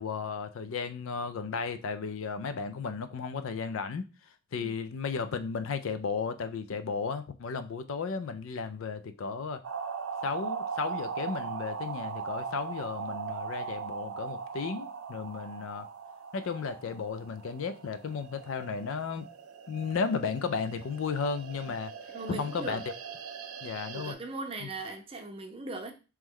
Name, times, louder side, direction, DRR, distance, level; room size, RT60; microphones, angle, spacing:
voice 1, 0.0-4.1 4.5-9.6 10.2-15.9 16.3-19.3 19.7-21.9 22.3-22.8 23.6-24.2 24.6-24.7, left 5 dB, 70° left, 0.4 m, -34 dB
sound 1, 9.6-24.1, right 6 dB, 85° right, 0.5 m, -40 dB
voice 2, 22.1-22.8 23.9-25.9, right 2 dB, 25° right, 0.6 m, -39 dB
3.1 x 3.0 x 3.7 m
head